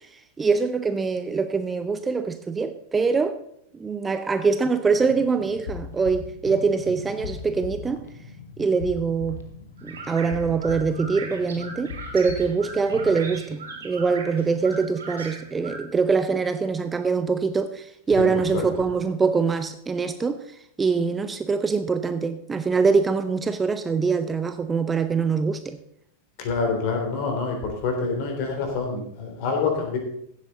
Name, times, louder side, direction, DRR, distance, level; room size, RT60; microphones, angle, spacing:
voice 1, 0.4-3.4 3.8-8.0 8.6-9.4 9.8-20.4 20.8-25.8, right 5 dB, 15° right, 10 dB, 0.6 m, -24 dB
sound 1, 4.9-13.3, left 6 dB, 60° left, 1.6 m, -39 dB
sound 2, 9.8-15.8, right 4 dB, 65° right, 3.5 m, -39 dB
voice 2, 26.4-27.6 27.8-30.0, left 4 dB, 45° left, 3 dB, 3.5 m, -26 dB
15.5 x 8.3 x 4.0 m, 0.73 s
figure-of-eight pair, 90°, 0 cm